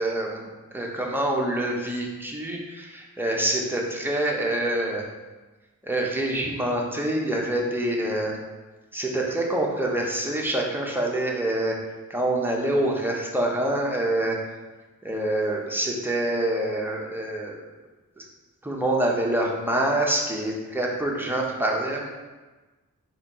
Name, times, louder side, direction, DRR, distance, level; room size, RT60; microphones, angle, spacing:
voice 1, 0.0-5.0 5.8-8.3 8.9-11.7 12.1-14.4 15.0-17.5 18.2-18.3 18.6-22.1, right 1 dB, 5° right, -2 dB, 0.8 m, -26 dB
4.1 x 3.0 x 4.1 m, 1.2 s
wide cardioid pair, 40°, 34 cm